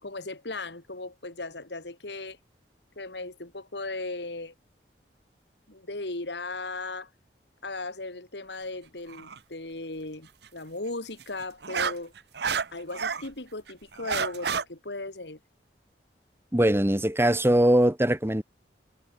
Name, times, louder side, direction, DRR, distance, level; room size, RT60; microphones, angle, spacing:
voice 1, 0.0-2.4 3.0-4.5 5.7-7.1 7.6-12.1 12.7-15.4, left 2 dB, 75° left, 2.8 m, -37 dB
sound 1, 9.1-9.4 11.2-13.3 13.7-14.6, right 6 dB, 65° right, 1.0 m, -29 dB
voice 2, 16.5-18.4, right 1 dB, 15° right, 2.0 m, -21 dB
head